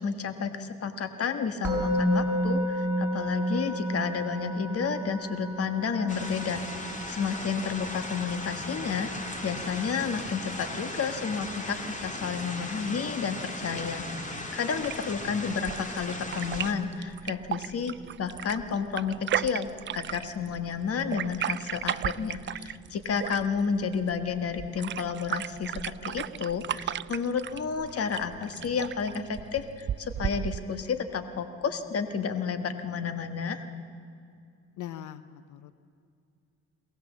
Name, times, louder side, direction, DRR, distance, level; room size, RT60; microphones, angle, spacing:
voice 1, 0.0-9.1 9.4-33.7, left 6 dB, 50° left, 8 dB, 1.5 m, -31 dB
Musical instrument, 1.6-12.8, equal, 5° right, 5.3 m, -33 dB
sound 1, 6.1-16.7, left 1 dB, 25° left, 2.5 m, -38 dB
sound 2, 14.8-30.8, right 10 dB, 40° right, 0.4 m, -36 dB
voice 2, 34.8-35.7, left 11 dB, 75° left, 13 dB, 0.8 m, -41 dB
22.5 x 18.0 x 7.4 m, 2.4 s
cardioid pair, 90°, 30 cm